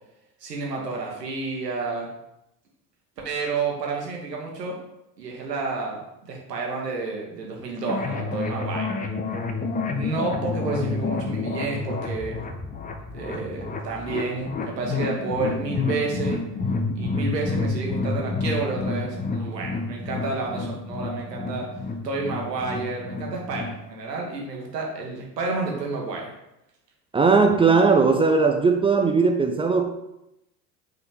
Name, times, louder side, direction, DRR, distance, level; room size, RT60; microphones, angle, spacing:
voice 1, 0.4-2.1 3.2-4.8 5.2-9.0 9.9-12.4 13.1-16.4 16.9-21.7 22.0-26.3, right 3 dB, 80° right, -1 dB, 1.7 m, -30 dB
sound 1, 7.8-23.8, left 3 dB, 15° left, 0.8 m, -29 dB
voice 2, 27.1-29.9, right 4 dB, 10° right, 4 dB, 0.4 m, -18 dB
5.9 x 4.0 x 5.0 m, 0.87 s
figure-of-eight pair, 70°, 48 cm